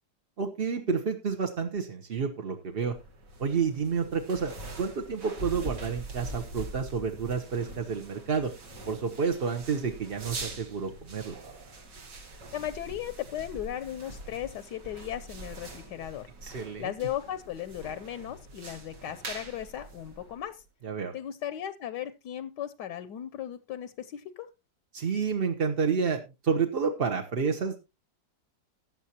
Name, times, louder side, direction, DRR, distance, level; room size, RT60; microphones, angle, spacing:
voice 1, 0.4-2.9 3.4-4.5 4.8-8.5 8.9-11.4 16.4-16.9 20.8-21.1 24.9-27.8, right 5 dB, 45° right, 4 dB, 0.8 m, -30 dB
sound 1, 2.8-20.6, right 2 dB, 70° right, 2.6 m, -43 dB
voice 2, 12.5-16.3 16.8-20.6 21.1-24.5, left 11 dB, 75° left, 14 dB, 1.3 m, -36 dB
15.0 x 9.8 x 2.9 m, 0.26 s
omnidirectional pair, 2.0 m